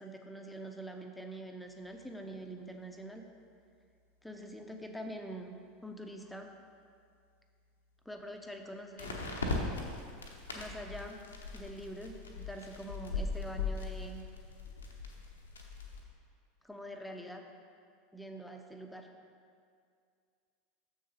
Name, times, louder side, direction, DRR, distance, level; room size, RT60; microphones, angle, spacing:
voice 1, 0.0-3.2 4.2-5.6 5.8-6.5 8.1-9.2 10.5-11.2 11.5-14.2 16.6-17.4 18.1-19.1, right 1 dB, 5° left, 3 dB, 0.7 m, -45 dB
sound 1, 2.2-2.3 9.0-16.0, left 3 dB, 80° left, 0.9 m, -39 dB
7.1 x 6.4 x 4.1 m, 2.3 s
figure-of-eight pair, 80°, 0 cm